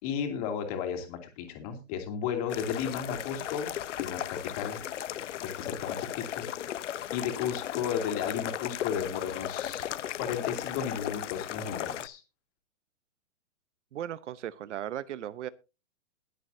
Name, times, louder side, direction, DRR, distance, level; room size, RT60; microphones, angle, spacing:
voice 1, 0.0-3.7 4.0-4.8 5.4-6.5 6.7-9.9 10.2-12.2, left 8 dB, 30° left, 5 dB, 2.7 m, -34 dB
sound 1, 2.5-12.1, left 11 dB, 80° left, 0.9 m, -36 dB
voice 2, 13.9-15.5, right 11 dB, 75° right, 17 dB, 0.9 m, -37 dB
21.0 x 7.7 x 2.7 m, 0.29 s
hypercardioid pair, 165°, 36 cm